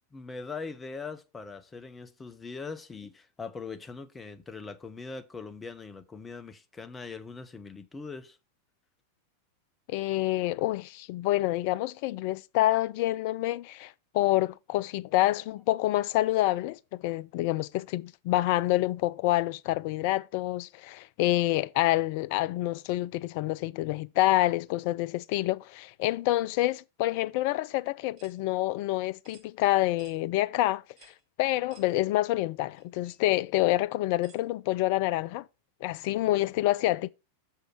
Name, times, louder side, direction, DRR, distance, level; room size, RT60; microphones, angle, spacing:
voice 1, 0.1-8.4, left 4 dB, 15° left, 0.7 m, -41 dB
voice 2, 9.9-31.1 31.4-35.5 35.8-37.1, left 16 dB, 45° left, 0.3 m, -27 dB
sound 1, 28.2-28.4 29.2-29.5 30.0-30.2 31.0-31.2 31.7-31.9 32.7-32.8 34.2-34.4, right 6 dB, 35° right, 1.5 m, -57 dB
6.3 x 4.5 x 4.9 m
figure-of-eight pair, 90°, 0 cm